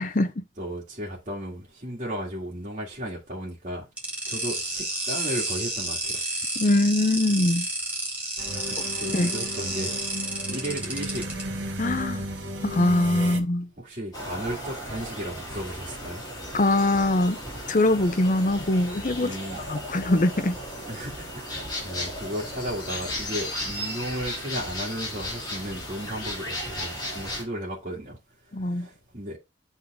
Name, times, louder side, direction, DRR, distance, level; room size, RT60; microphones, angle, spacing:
voice 1, 0.0-0.4 6.6-7.7 9.1-9.3 11.8-12.3 12.6-13.7 16.5-17.4 17.7-20.6 28.5-28.9, left 1 dB, 45° left, 0.7 m, -23 dB
voice 2, 0.6-3.8 4.3-6.2 8.5-10.0 10.4-11.3 13.2-13.4 13.8-16.2 19.2-19.6 20.9-28.2 28.6-29.4, equal, 40° right, 2.0 m, -35 dB
sound 1, 4.0-11.4, right 1 dB, 5° right, 2.9 m, -31 dB
sound 2, 8.4-13.4, right 1 dB, 90° right, 1.5 m, -34 dB
sound 3, 14.1-27.4, left 1 dB, 25° left, 2.9 m, -35 dB
8.2 x 3.9 x 3.5 m
head